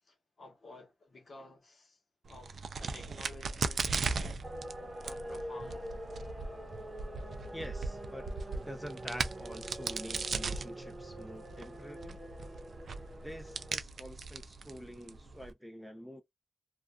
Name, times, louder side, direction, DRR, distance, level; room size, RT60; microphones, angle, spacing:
voice 1, 0.0-2.0 2.3-4.4 5.0-5.9, left 2 dB, 60° left, 1.0 m, -53 dB
Crack, 2.3-15.5, right 4 dB, 75° right, 0.3 m, -39 dB
sound 1, 4.4-13.7, equal, 35° right, 0.8 m, -45 dB
voice 2, 7.5-8.2 8.5-12.2 13.2-16.2, equal, ahead, 0.5 m, -46 dB
2.5 x 2.3 x 2.2 m
wide cardioid pair, 120°, 0 cm